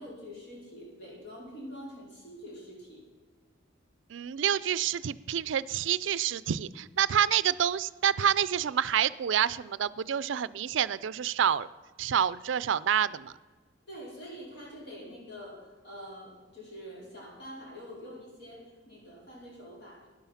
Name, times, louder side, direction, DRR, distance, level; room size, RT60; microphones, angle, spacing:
voice 1, 0.0-3.0 13.9-20.1, equal, 60° left, -3 dB, 4.6 m, -45 dB
voice 2, 4.1-11.7 12.0-13.3, right 9 dB, 70° right, 18 dB, 0.4 m, -28 dB
13.0 x 10.5 x 5.7 m, 1.4 s
head